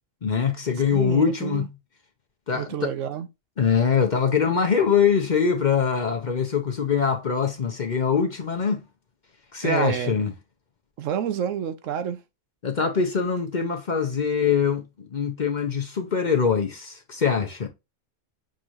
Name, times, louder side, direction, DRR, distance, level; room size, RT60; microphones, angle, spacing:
voice 1, 0.2-1.6 2.5-2.9 3.6-8.8 9.5-10.3 12.6-17.7, left 6 dB, 45° left, 0.7 m, -23 dB
voice 2, 0.9-1.7 2.5-3.3 9.6-10.2 11.0-12.2, right 9 dB, 75° right, 1.1 m, -28 dB
6.3 x 3.0 x 2.5 m
omnidirectional pair, 1.3 m